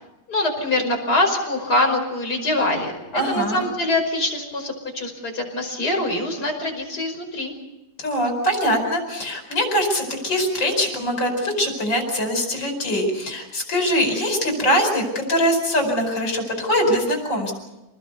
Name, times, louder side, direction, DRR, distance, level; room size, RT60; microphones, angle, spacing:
voice 1, 0.3-7.5, left 1 dB, 60° left, 2 dB, 6.0 m, -24 dB
voice 2, 3.1-3.6 8.0-17.5, equal, 85° left, 3 dB, 5.9 m, -22 dB
27.5 x 20.0 x 6.9 m, 1.0 s
omnidirectional pair, 2.0 m